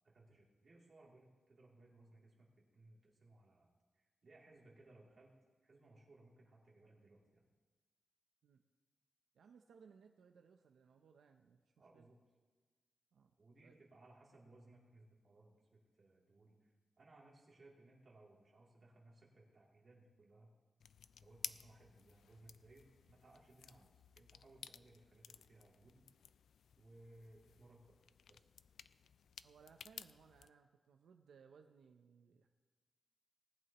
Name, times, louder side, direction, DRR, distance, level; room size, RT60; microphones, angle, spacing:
voice 1, 0.0-7.5 11.8-12.2 13.4-20.5 21.2-26.1 26.8-28.5, right 2 dB, 40° right, -4 dB, 2.9 m, -64 dB
voice 2, 9.3-11.6 11.9-12.1 13.1-13.3 13.6-13.8 29.4-32.5, right 6 dB, 85° right, 5 dB, 0.6 m, -64 dB
sound 1, 20.8-30.5, left 7 dB, 85° left, 0.3 m, -55 dB
19.5 x 11.0 x 3.0 m, 1.4 s
wide cardioid pair, 170°, 0 cm